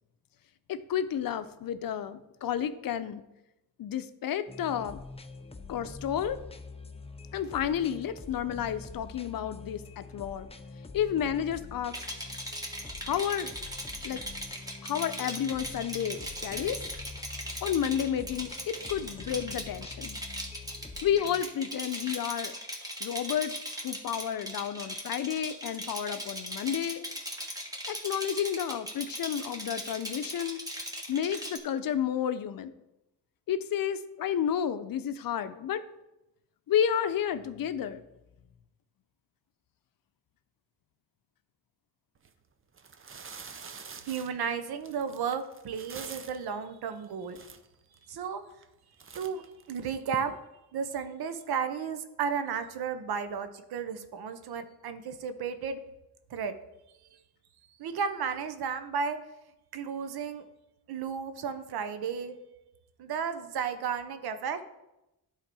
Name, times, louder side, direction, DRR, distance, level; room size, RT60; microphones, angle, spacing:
voice 1, 0.7-3.2 3.8-5.0 5.7-6.4 7.3-10.5 10.9-12.0 13.0-13.5 14.0-14.2 14.8-16.8 17.6-20.2 21.0-22.6 23.0-23.5 23.8-27.1 27.9-30.6 31.1-32.7 33.5-35.8 36.7-38.0, left 9 dB, 65° left, 12 dB, 0.6 m, -31 dB
sound 1, 4.5-21.4, left 3 dB, 15° left, 0.6 m, -46 dB
Rattle, 11.9-31.6, equal, 10° right, 1.5 m, -39 dB
sound 2, 42.2-42.3 42.7-46.5 47.0-47.1 47.3-48.0 48.5-48.7 49.0-50.2, right 5 dB, 35° right, 0.7 m, -46 dB
voice 2, 44.0-47.4 48.1-48.4 49.2-50.3 50.7-55.8 56.3-56.5 57.8-59.2 59.7-60.4 60.9-62.4 63.0-64.6, right 6 dB, 75° right, 10 dB, 0.9 m, -33 dB
11.0 x 3.8 x 4.7 m, 0.92 s
cardioid pair, 85°, 38 cm